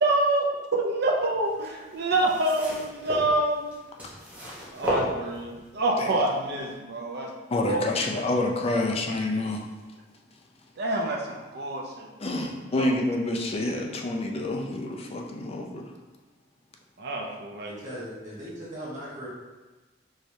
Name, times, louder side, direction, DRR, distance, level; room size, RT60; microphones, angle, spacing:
voice 1, 0.0-3.7 4.7-7.3 7.6-7.8 10.8-12.4 12.8-12.9 17.0-17.7, right 2 dB, 60° right, 1 dB, 0.6 m, -27 dB
sound 1, 1.5-5.7 6.5-6.6, equal, 10° right, 1.0 m, -34 dB
voice 2, 7.5-9.6 12.2-15.9, left 2 dB, 30° left, 2 dB, 0.4 m, -28 dB
voice 3, 17.6-19.3, equal, 40° right, -9 dB, 1.2 m, -38 dB
4.7 x 3.2 x 2.7 m, 1.2 s
head